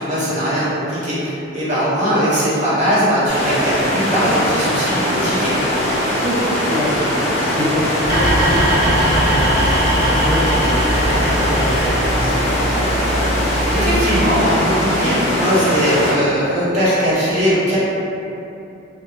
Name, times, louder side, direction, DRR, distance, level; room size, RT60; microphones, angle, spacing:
voice 1, 0.0-5.6 13.7-17.8, equal, 40° right, -10 dB, 0.8 m, -19 dB
sound 1, 3.3-16.1, equal, 35° left, 0.6 m, -20 dB
voice 2, 6.2-7.1 7.6-12.5, equal, 15° right, -12 dB, 0.6 m, -25 dB
sound 2, 8.0-14.0, equal, 60° right, 1.2 m, -20 dB
2.3 x 2.3 x 3.0 m, 2.8 s
head